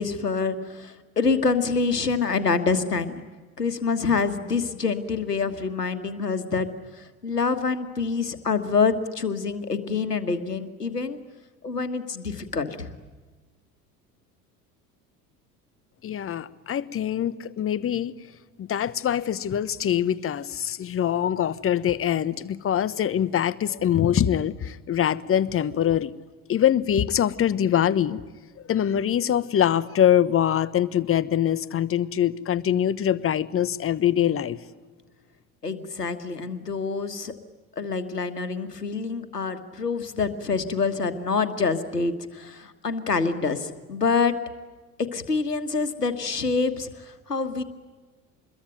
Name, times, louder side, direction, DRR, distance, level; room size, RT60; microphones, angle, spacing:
voice 1, 0.0-3.2 3.6-11.2 11.6-12.9 35.6-37.3 37.8-44.3 45.0-47.6, left 4 dB, 90° left, 10 dB, 1.6 m, -26 dB
voice 2, 16.0-18.1 18.6-26.1 26.5-28.2 28.6-34.6, left 10 dB, 30° left, 17 dB, 1.1 m, -23 dB
27.0 x 22.0 x 9.3 m, 1.3 s
figure-of-eight pair, 70°, 46 cm